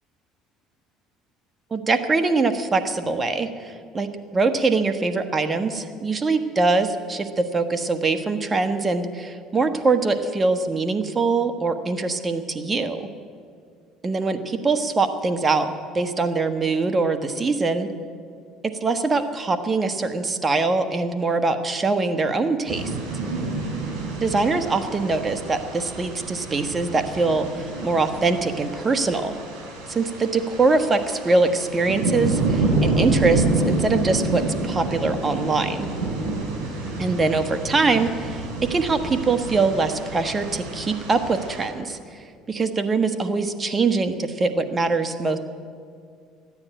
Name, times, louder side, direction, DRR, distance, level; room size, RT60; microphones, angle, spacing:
voice 1, 1.7-13.1 14.0-17.9 18.6-22.9 24.2-29.3 29.9-35.9 37.0-42.0 42.5-45.4, right 3 dB, 25° right, 8 dB, 1.2 m, -23 dB
sound 1, 22.7-41.7, right 3 dB, 70° right, 5.2 m, -28 dB
13.5 x 9.8 x 9.0 m, 2.3 s
supercardioid pair, 90°, 0 cm